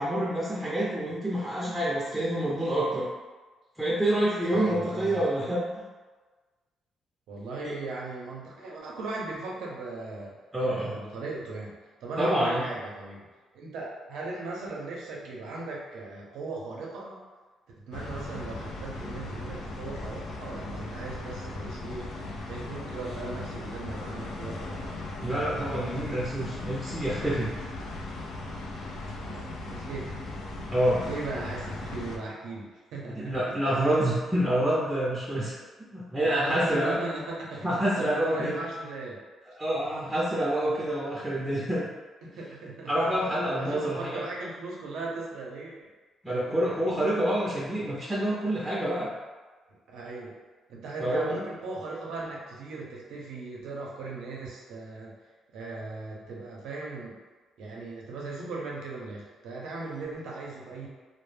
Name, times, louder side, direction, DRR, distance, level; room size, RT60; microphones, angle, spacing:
voice 1, 0.0-3.1 3.8-5.6 7.6-7.7 10.5-10.9 12.2-12.7 25.2-27.5 30.7-31.1 33.1-35.5 35.9-37.0 37.6-38.6 39.6-41.9 42.9-44.3 46.2-49.1 51.0-51.4, right 1 dB, 10° right, -7 dB, 0.5 m, -27 dB
voice 2, 4.5-5.2 7.3-10.4 10.7-11.7 12.0-13.3 13.5-17.2 17.8-22.1 22.5-25.1 29.2-30.1 31.0-33.6 36.2-39.2 42.2-42.9 43.2-45.9 46.3-47.0 49.9-50.4 50.7-55.2 55.5-57.2 57.6-60.9, right 3 dB, 85° right, -3 dB, 0.6 m, -38 dB
sound 1, 17.9-32.2, left 2 dB, 85° left, 0.4 m, -38 dB
2.1 x 2.0 x 3.2 m, 1.3 s
cardioid pair, 90°, 0 cm